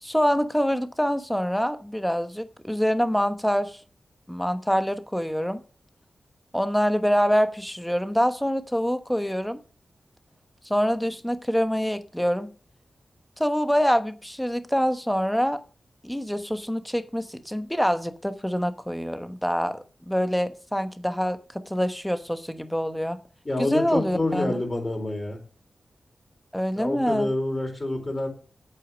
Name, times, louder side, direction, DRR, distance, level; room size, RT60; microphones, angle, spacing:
voice 1, 0.0-3.8 4.3-5.6 6.5-9.6 10.7-12.5 13.4-15.6 16.0-21.4 21.7-23.2 23.6-24.6 26.5-27.3, equal, 5° left, 1.1 m, -25 dB
voice 2, 23.4-25.4 26.8-28.3, left 2 dB, 30° left, 4.1 m, -27 dB
8.4 x 8.3 x 6.2 m
wide cardioid pair, 110°, 0 cm